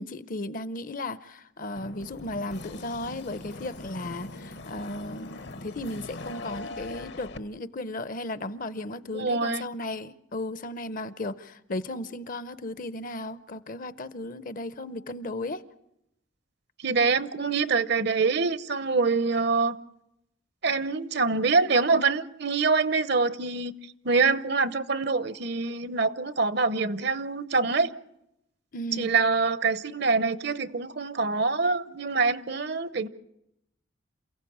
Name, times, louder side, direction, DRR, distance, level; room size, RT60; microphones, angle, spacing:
voice 1, 0.0-15.6 28.7-29.1, left 2 dB, 45° left, 0.8 m, -35 dB
sound 1, 1.8-7.4, left 2 dB, 60° left, 1.1 m, -41 dB
voice 2, 9.1-9.6 16.8-19.7 20.6-23.7 24.0-27.9 29.0-33.1, right 4 dB, 60° right, 0.9 m, -25 dB
28.5 x 16.0 x 8.7 m
head